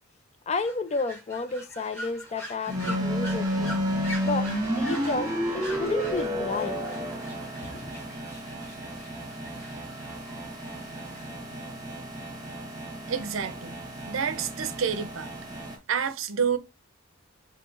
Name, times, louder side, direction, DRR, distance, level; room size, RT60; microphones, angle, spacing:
voice 1, 0.5-3.7 4.2-6.8 7.7-7.9, left 4 dB, 30° left, 0.3 m, -31 dB
sound 1, 0.6-11.3, equal, 10° left, 1.2 m, -43 dB
sound 2, 2.7-15.8, equal, 20° right, 0.9 m, -32 dB
voice 2, 13.1-13.7 14.1-15.3 15.9-16.6, right 7 dB, 70° right, 0.5 m, -28 dB
6.0 x 2.8 x 2.5 m
head